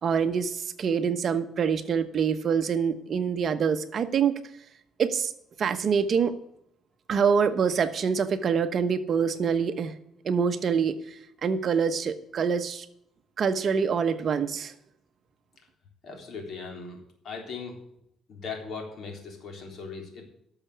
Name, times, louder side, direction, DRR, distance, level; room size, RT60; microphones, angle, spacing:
voice 1, 0.0-4.4 5.0-5.3 5.6-6.3 7.1-9.9 10.2-11.0 11.4-12.9 13.4-14.7, right 6 dB, 45° right, 9 dB, 1.1 m, -25 dB
voice 2, 16.0-17.8 18.3-20.2, left 4 dB, 50° left, 2 dB, 3.7 m, -39 dB
12.0 x 6.9 x 8.5 m, 0.75 s
cardioid pair, 125°, 0 cm